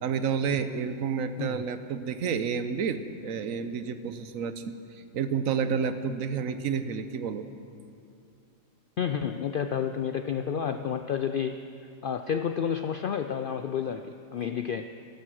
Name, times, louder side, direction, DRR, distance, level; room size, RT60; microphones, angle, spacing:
voice 1, 0.0-7.5, right 6 dB, 75° right, 10 dB, 1.2 m, -30 dB
voice 2, 9.0-11.6 12.0-14.9, left 7 dB, 70° left, 8 dB, 0.5 m, -30 dB
15.5 x 12.0 x 6.4 m, 2.5 s
omnidirectional pair, 1.4 m